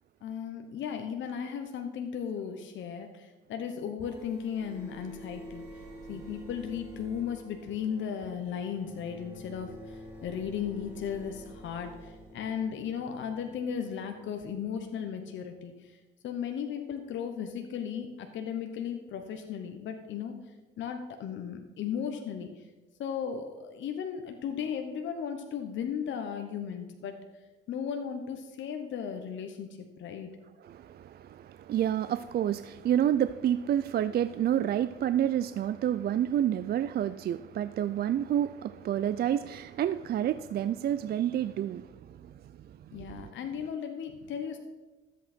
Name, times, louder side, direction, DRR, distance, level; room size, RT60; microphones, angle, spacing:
voice 1, 0.2-5.8 6.1-16.0 16.2-20.4 20.8-22.7 23.0-27.2 27.7-30.3 42.9-44.6, left 7 dB, 75° left, 5 dB, 1.0 m, -36 dB
sound 1, 4.0-15.6, equal, 15° right, 4.4 m, -49 dB
voice 2, 30.6-42.3 42.6-43.3, right 10 dB, 55° right, 14 dB, 0.4 m, -29 dB
13.0 x 8.3 x 4.3 m, 1.2 s
cardioid pair, 90°, 20 cm